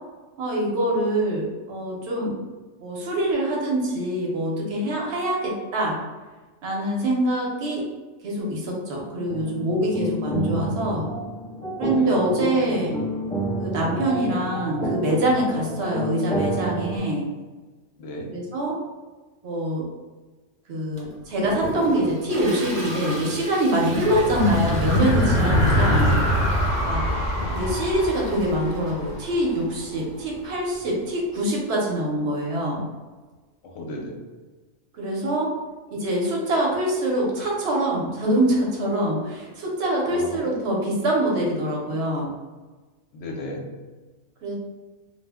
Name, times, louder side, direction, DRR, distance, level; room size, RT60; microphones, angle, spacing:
voice 1, 0.4-2.3 2.8-6.0 6.6-7.8 8.2-11.1 11.8-13.0 13.6-17.3 18.3-18.8 19.4-19.9 20.7-26.1 26.8-27.1 27.5-32.8 34.9-35.5 35.9-42.3 44.4-44.5, right 1 dB, 65° right, -2 dB, 0.9 m, -24 dB
sound 1, 9.3-17.0, right 1 dB, 5° left, 0.5 m, -29 dB
voice 2, 18.0-18.3 26.9-27.2 33.6-34.2 40.0-40.4 43.1-43.7, left 1 dB, 75° left, 0 dB, 0.9 m, -35 dB
Toilet flush, 21.0-31.2, equal, 40° right, 0.6 m, -37 dB
sound 2, 23.9-29.5, equal, 45° left, 0.6 m, -23 dB
2.3 x 2.0 x 3.3 m, 1.3 s
omnidirectional pair, 1.3 m